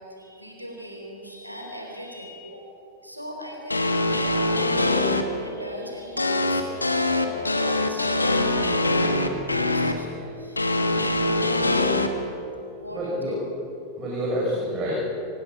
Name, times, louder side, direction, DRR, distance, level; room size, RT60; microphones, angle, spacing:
voice 1, 0.0-2.7 3.0-12.0 12.7-13.2, equal, 90° right, 1 dB, 4.0 m, -39 dB
sound 1, 3.7-5.2 6.2-9.9 10.6-12.1, left 2 dB, 80° left, 1.4 m, -23 dB
voice 2, 12.9-13.4 14.0-15.1, equal, 30° right, -5 dB, 5.5 m, -27 dB
25.0 x 18.5 x 5.9 m, 3.0 s
figure-of-eight pair, 90°, 0 cm